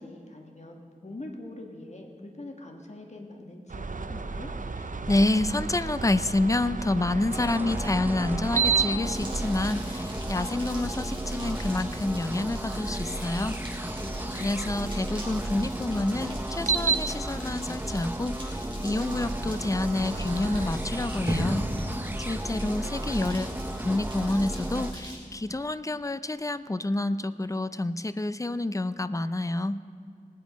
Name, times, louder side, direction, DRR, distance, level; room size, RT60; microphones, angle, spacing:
voice 1, 0.0-4.5 14.0-14.8, left 1 dB, 50° left, 1 dB, 1.4 m, -43 dB
sound 1, 3.7-15.1 16.5-20.7, right 5 dB, 60° right, 0.6 m, -34 dB
voice 2, 5.1-13.6 14.3-21.7 22.2-23.5 23.8-29.8, left 2 dB, 20° left, 14 dB, 0.4 m, -28 dB
sound 2, 7.3-24.9, right 1 dB, 15° right, 0.8 m, -34 dB
sound 3, 9.0-25.1, equal, 35° right, 3.9 m, -40 dB
19.5 x 8.3 x 5.2 m, 2.4 s
wide cardioid pair, 60°, 15 cm